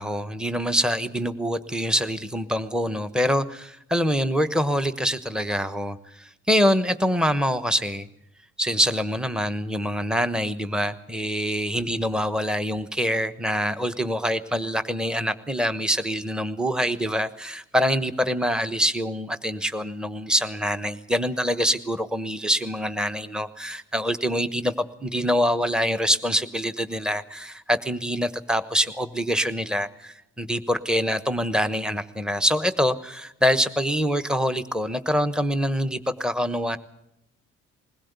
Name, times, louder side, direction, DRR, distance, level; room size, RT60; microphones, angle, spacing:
voice 1, 0.0-8.1 8.6-24.7 25.0-36.8, equal, 5° right, 12 dB, 1.1 m, -25 dB
21.0 x 16.5 x 8.2 m, 0.82 s
cardioid pair, 90°, 30 cm